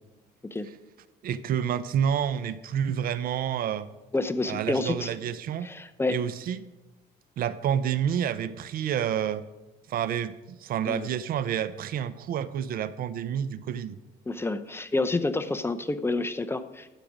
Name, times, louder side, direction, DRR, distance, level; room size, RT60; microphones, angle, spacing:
voice 1, 1.2-3.9 4.4-5.7 6.1-6.6 7.4-9.4 9.9-14.0, right 9 dB, 60° right, 15 dB, 0.6 m, -29 dB
voice 2, 4.1-5.1 5.6-6.2 10.9-11.1 14.3-16.9, left 2 dB, 15° left, 10 dB, 0.7 m, -29 dB
12.0 x 8.4 x 5.1 m, 1.0 s
cardioid pair, 110°, 17 cm